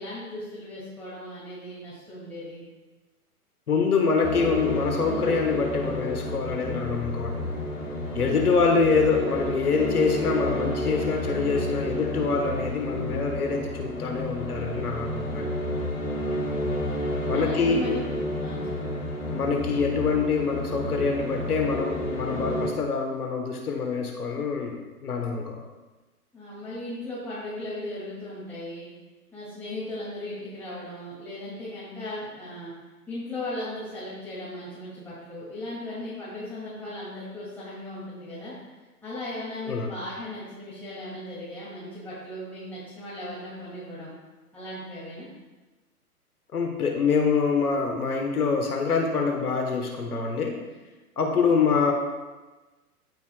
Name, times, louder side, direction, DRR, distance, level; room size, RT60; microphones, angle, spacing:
voice 1, 0.0-2.6 17.3-18.0 18.4-19.1 26.3-28.9 29.3-32.7 33.1-38.6 39.0-44.1 44.5-45.3, left 1 dB, 5° left, -11 dB, 2.3 m, -37 dB
voice 2, 3.7-7.5 8.1-15.5 17.3-17.8 19.3-25.6 39.6-39.9 46.5-50.6 51.2-51.9, left 5 dB, 70° left, 2 dB, 1.2 m, -25 dB
sound 1, 4.2-22.7, left 1 dB, 20° left, 2.0 m, -30 dB
14.0 x 5.4 x 2.2 m, 1.2 s
figure-of-eight pair, 115°, 46 cm